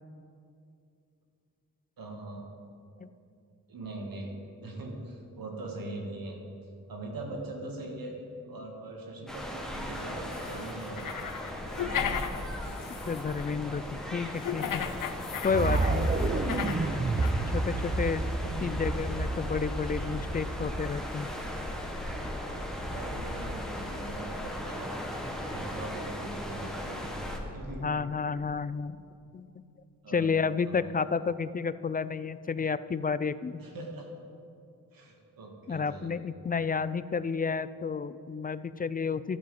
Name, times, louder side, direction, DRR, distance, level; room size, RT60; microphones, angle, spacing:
voice 1, 2.0-2.5 3.7-4.3 4.6-6.4 6.9-8.2 8.5-12.1 16.2-16.6 18.4-18.7 19.8-20.1 22.9-24.9 25.5-27.0 27.5-27.8 30.0-30.3 30.6-30.9 33.6-34.1 34.9-36.1, right 2 dB, 85° right, 1 dB, 1.6 m, -41 dB
sound 1, 9.3-27.4, equal, ahead, 1.5 m, -37 dB
sound 2, 10.3-13.5 14.4-16.9 17.2-17.3, left 8 dB, 70° left, 0.7 m, -36 dB
voice 2, 13.1-13.8 14.1-14.9 15.4-16.1 17.5-18.3 18.6-21.3 27.8-29.0 29.3-29.6 30.1-33.6 35.7-39.4, left 5 dB, 25° left, 15 dB, 0.3 m, -31 dB
sound 3, 15.5-21.5, right 3 dB, 25° right, 0.6 m, -30 dB
12.0 x 5.0 x 7.6 m, 2.5 s
cardioid pair, 50°, 34 cm